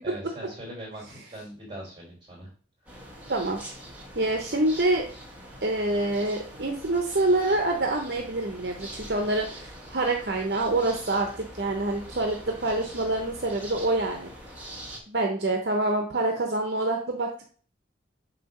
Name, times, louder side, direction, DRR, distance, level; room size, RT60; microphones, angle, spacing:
voice 1, 0.0-2.5 2.9-3.0, right 1 dB, 25° right, -2 dB, 3.6 m, -41 dB
sound 1, 2.9-15.0, right 1 dB, 10° right, 1.6 m, -44 dB
voice 2, 3.3-3.6 4.2-5.1 5.6-14.3 15.1-17.3, right 2 dB, 60° right, 2 dB, 0.9 m, -26 dB
7.6 x 2.8 x 5.4 m, 0.42 s
head